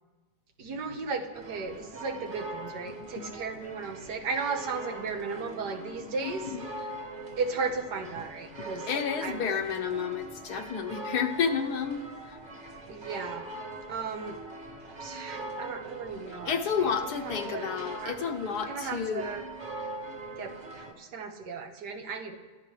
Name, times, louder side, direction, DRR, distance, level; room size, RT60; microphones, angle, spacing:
voice 1, 0.6-6.4 7.4-8.9 9.2-9.4 12.9-13.5 13.9-14.4 15.0-17.7 18.0-18.3 18.7-19.5 20.4-22.4, right 4 dB, 85° right, 5 dB, 1.8 m, -35 dB
sound 1, 1.3-20.9, right 2 dB, 30° right, 1.5 m, -42 dB
voice 2, 6.2-6.6 8.9-12.4 16.3-19.3, left 7 dB, 75° left, 5 dB, 1.5 m, -31 dB
23.0 x 12.0 x 3.3 m, 1.4 s
omnidirectional pair, 1.7 m